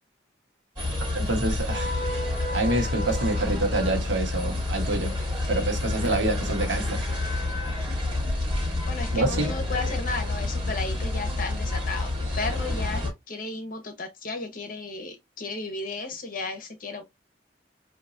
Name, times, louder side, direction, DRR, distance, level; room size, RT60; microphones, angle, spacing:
sound 1, 0.8-13.1, left 2 dB, 25° right, 2.4 m, -28 dB
voice 1, 1.1-1.9 2.5-5.2 5.5-7.0 9.1-9.5, right 2 dB, 80° right, 1.1 m, -26 dB
voice 2, 8.9-17.0, left 3 dB, 45° left, 0.9 m, -34 dB
4.0 x 2.7 x 2.5 m
head